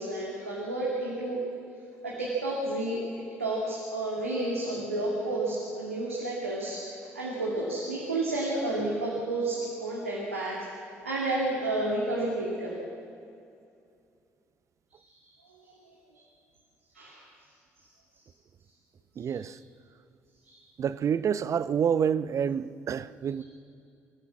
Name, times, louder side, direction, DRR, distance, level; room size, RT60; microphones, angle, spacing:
voice 1, 0.0-1.4 2.0-3.0 3.4-10.6 11.0-12.8 15.3-15.4 15.7-15.8 16.1-16.2 16.9-17.2 19.3-19.4 20.4-20.6, right 2 dB, 90° right, 2.5 m, -31 dB
voice 2, 19.2-19.6 20.8-23.4, right 7 dB, 45° right, 0.7 m, -28 dB
25.0 x 14.0 x 7.5 m
figure-of-eight pair, 45°, 7 cm